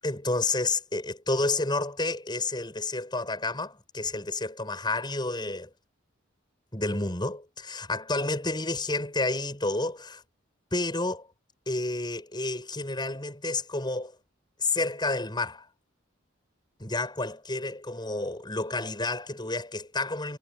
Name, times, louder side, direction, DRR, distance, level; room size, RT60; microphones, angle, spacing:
voice 1, 0.0-5.7 6.7-10.2 10.7-11.3 11.7-14.2 14.6-15.7 16.8-20.4, left 2 dB, 25° left, 7.0 m, -30 dB
head